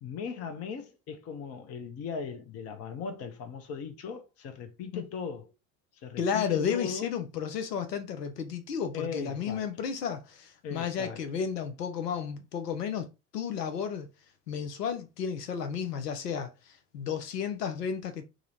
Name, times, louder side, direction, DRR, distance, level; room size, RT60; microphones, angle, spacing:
voice 1, 0.0-5.5 6.0-7.1 8.9-9.7 10.6-11.2, left 6 dB, 30° left, 0.6 m, -38 dB
voice 2, 6.2-13.1 13.3-14.1 14.5-16.5 16.9-18.2, left 7 dB, 75° left, 0.6 m, -32 dB
3.6 x 2.0 x 2.9 m
figure-of-eight pair, 65°, 48 cm